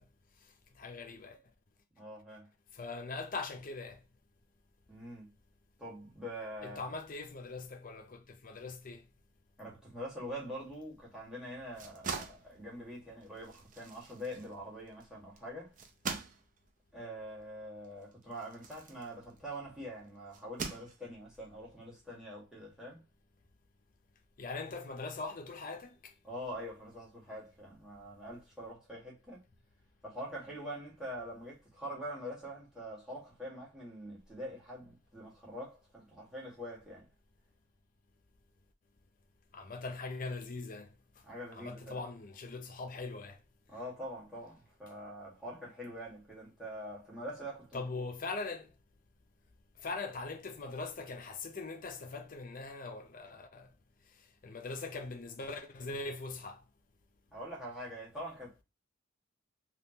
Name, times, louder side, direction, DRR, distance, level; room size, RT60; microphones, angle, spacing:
voice 1, 0.8-1.4 2.7-4.0 6.6-9.0 24.4-26.1 39.5-40.9 41.5-43.4 47.7-48.7 49.8-53.7 54.4-56.6, left 3 dB, 45° left, 0.5 m, -41 dB
voice 2, 2.0-2.5 4.9-5.3 5.8-6.9 9.6-15.7 16.9-23.0 26.2-29.4 30.0-37.1 41.2-42.0 43.7-48.0 57.3-58.6, equal, 5° right, 1.5 m, -44 dB
sound 1, 11.6-19.7 20.3-21.4, right 5 dB, 40° right, 0.5 m, -44 dB
3.5 x 2.4 x 2.8 m
head